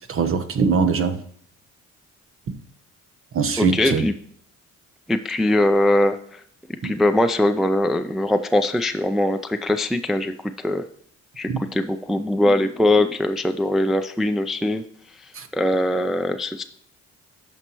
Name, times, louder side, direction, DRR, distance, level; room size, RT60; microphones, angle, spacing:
voice 1, 0.1-1.2 2.5-2.6 3.3-4.0 6.8-6.9 11.5-11.6 15.4-15.5, right 5 dB, 45° right, 9 dB, 1.0 m, -22 dB
voice 2, 3.6-4.1 5.1-6.4 6.8-10.8 11.4-16.6, left 1 dB, ahead, 7 dB, 0.3 m, -22 dB
14.0 x 5.5 x 3.0 m, 0.63 s
cardioid pair, 90°, 30 cm